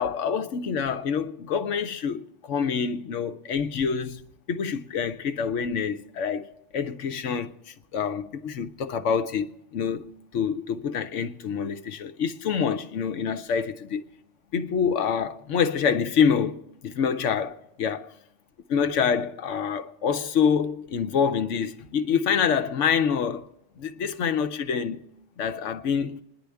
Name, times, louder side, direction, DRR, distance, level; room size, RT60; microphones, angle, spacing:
voice 1, 0.0-4.2 4.5-14.0 14.5-18.1 18.7-23.5 23.8-25.1 25.4-26.2, left 7 dB, 85° left, 1.1 m, -26 dB
27.5 x 10.5 x 3.5 m
omnidirectional pair, 1.2 m